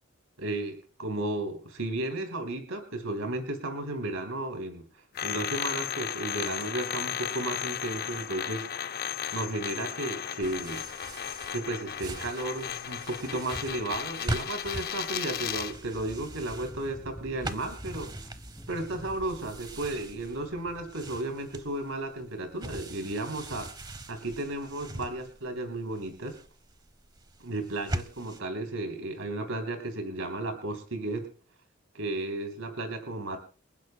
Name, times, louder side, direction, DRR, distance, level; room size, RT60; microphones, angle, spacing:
voice 1, 0.4-9.0 9.3-10.8 11.5-18.1 18.7-23.7 24.1-26.4 27.4-31.3 31.9-33.4, right 2 dB, 80° right, 5 dB, 3.4 m, -34 dB
sound 1, 5.1-15.8, left 9 dB, 45° left, 0.5 m, -35 dB
sound 2, 10.4-28.4, right 1 dB, 20° right, 0.9 m, -41 dB
sound 3, 15.4-21.7, equal, ahead, 1.2 m, -47 dB
29.0 x 10.5 x 2.2 m, 0.37 s
head